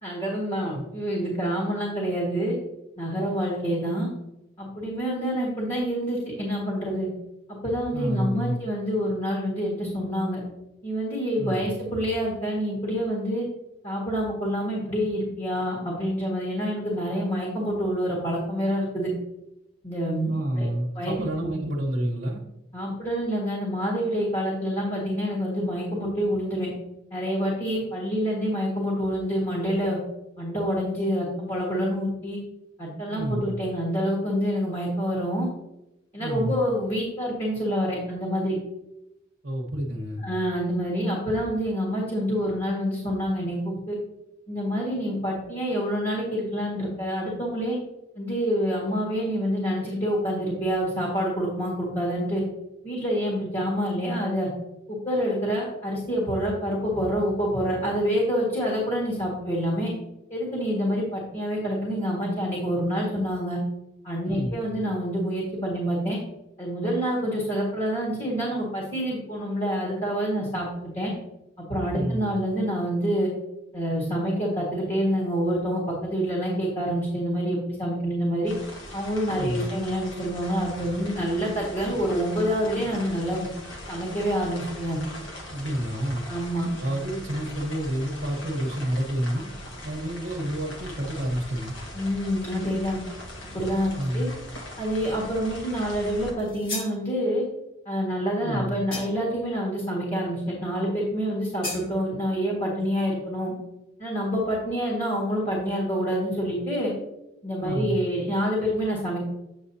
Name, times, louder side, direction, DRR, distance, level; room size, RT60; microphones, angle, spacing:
voice 1, 0.0-2.6 3.0-4.1 4.6-7.1 7.5-10.4 10.8-13.5 13.8-19.1 19.8-20.7 21.0-21.5 22.7-26.7 27.1-30.0 30.4-32.4 32.8-35.5 36.1-38.6 40.2-44.0 44.5-47.8 48.2-52.4 52.8-54.5 54.9-59.9 60.3-63.6 64.0-66.2 66.6-71.1 71.6-73.3 73.7-78.5 78.9-83.5 83.9-85.0 86.3-86.7 91.9-93.0 93.5-94.3 94.8-97.4 97.9-103.5 104.0-106.9 107.4-109.2, equal, 25° left, -4 dB, 1.8 m, -27 dB
voice 2, 7.9-8.6 11.4-11.7 20.3-22.4 33.1-33.5 36.2-36.6 39.4-40.3 64.2-64.7 71.9-72.3 79.3-79.7 85.5-86.2 86.8-89.5 89.8-91.7 93.9-94.3 98.4-98.8 107.6-108.0, right 1 dB, 55° right, -3 dB, 1.3 m, -29 dB
sound 1, 78.5-96.3, left 1 dB, 65° left, 1.5 m, -41 dB
sound 2, 96.4-97.0 98.9-99.4 101.6-101.9, left 2 dB, 45° left, 2.7 m, -34 dB
8.6 x 6.7 x 2.8 m, 0.92 s
head